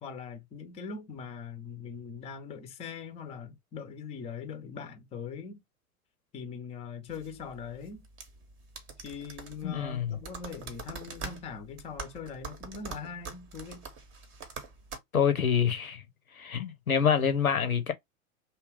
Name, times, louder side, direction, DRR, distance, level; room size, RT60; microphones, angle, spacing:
voice 1, 0.0-5.6 6.3-8.1 9.0-13.8, left 6 dB, 15° left, 0.6 m, -41 dB
sound 1, 7.1-15.0, right 4 dB, 30° right, 0.8 m, -44 dB
voice 2, 9.6-10.2 15.1-16.0 16.4-17.9, left 7 dB, 85° left, 0.7 m, -26 dB
2.8 x 2.3 x 3.2 m
figure-of-eight pair, 90°, 42 cm